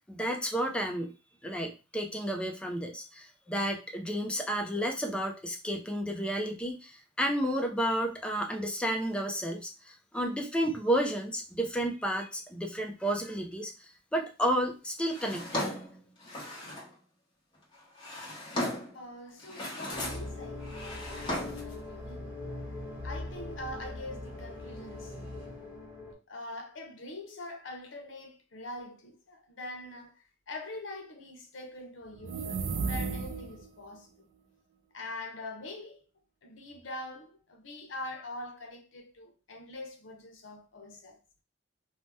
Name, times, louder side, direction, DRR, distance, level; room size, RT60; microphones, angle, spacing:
voice 1, 0.1-1.1 1.4-15.7, right 1 dB, 5° left, 0.4 m, -31 dB
Drawer open or close, 15.1-16.9 17.7-19.0 19.4-20.3 20.6-21.7, left 1 dB, 25° left, 0.9 m, -36 dB
voice 2, 18.9-22.3 23.0-25.4 26.3-34.3 34.9-36.1 36.4-41.2, left 2 dB, 75° left, 0.7 m, -44 dB
sound 1, 19.9-26.1, left 2 dB, 10° right, 0.9 m, -41 dB
sound 2, 32.1-33.7, right 4 dB, 75° right, 0.4 m, -33 dB
2.7 x 2.1 x 3.4 m
head